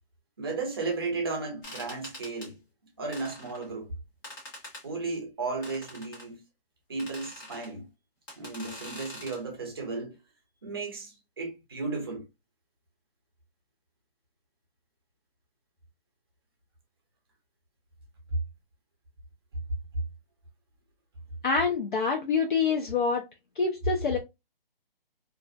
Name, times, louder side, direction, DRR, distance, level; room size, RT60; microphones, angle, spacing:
voice 1, 0.4-2.6 3.0-3.9 4.8-6.4 6.9-7.9 8.4-10.2 10.6-12.2, right 3 dB, 25° right, 0.6 m, -34 dB
sound 1, 1.6-2.5 3.1-3.7 4.2-4.9 5.6-6.3 7.0-7.7 8.3-9.4, left 1 dB, 20° left, 0.8 m, -44 dB
voice 2, 21.4-23.2 23.6-24.2, left 5 dB, 55° left, 0.5 m, -26 dB
2.4 x 2.0 x 2.5 m
hypercardioid pair, 160°, 30 cm